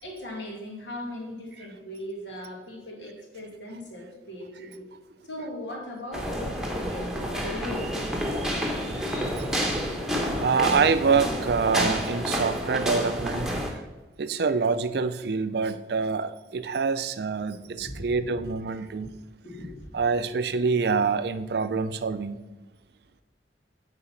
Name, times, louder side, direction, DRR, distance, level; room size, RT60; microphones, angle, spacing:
voice 1, 0.0-4.9 5.2-8.0 17.6-18.4 19.4-19.9, left 1 dB, 85° left, 0 dB, 2.0 m, -39 dB
sound 1, 6.1-13.7, equal, 5° right, 0.9 m, -29 dB
voice 2, 8.4-8.9 9.4-9.7 10.4-13.8 14.2-19.1 19.9-22.4, right 5 dB, 60° right, 12 dB, 0.4 m, -26 dB
8.7 x 4.1 x 5.7 m, 1.2 s
head